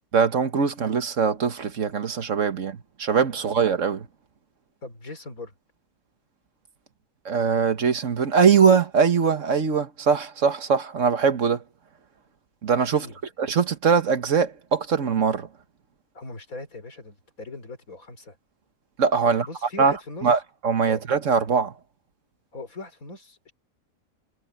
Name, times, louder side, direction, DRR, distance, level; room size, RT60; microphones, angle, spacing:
voice 1, 0.1-4.1 7.2-11.6 12.6-13.1 13.4-15.5 19.0-19.5 19.8-19.9 20.2-21.7, right 6 dB, 60° right, 1.6 m, -22 dB
voice 2, 4.8-5.5 12.9-13.1 16.1-18.4 19.2-20.3 20.8-21.0 22.5-23.5, left 3 dB, 70° left, 4.4 m, -39 dB
omnidirectional pair, 1.5 m